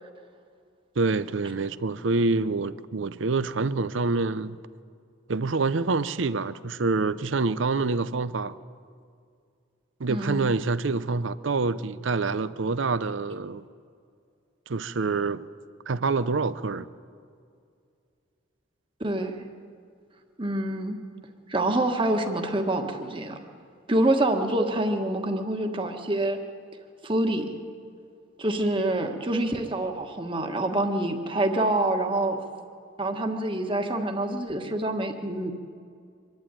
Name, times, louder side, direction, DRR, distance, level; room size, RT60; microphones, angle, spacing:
voice 1, 1.0-4.6 5.3-8.5 10.0-13.6 14.7-15.5 15.9-16.9, right 3 dB, 70° right, 0.7 m, -26 dB
voice 2, 10.1-10.5 19.0-19.3 20.4-21.0 21.5-23.4 23.9-26.4 27.0-27.5 28.4-32.4 33.0-35.5, right 1 dB, 25° right, 1.5 m, -26 dB
24.5 x 11.5 x 9.2 m
head